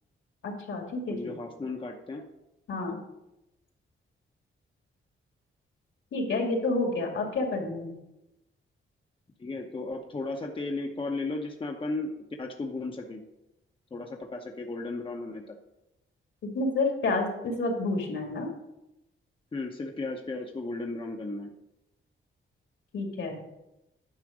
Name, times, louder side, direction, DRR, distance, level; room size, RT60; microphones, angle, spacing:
voice 1, 0.4-1.1 2.7-3.0 6.1-8.0 16.5-18.5 22.9-23.4, left 2 dB, 70° left, 2 dB, 2.3 m, -29 dB
voice 2, 1.1-2.2 2.9-3.1 9.4-13.2 13.9-15.6 19.5-21.5, left 3 dB, 25° left, 3 dB, 0.8 m, -35 dB
9.7 x 5.7 x 5.0 m, 0.91 s
wide cardioid pair, 120°, 21 cm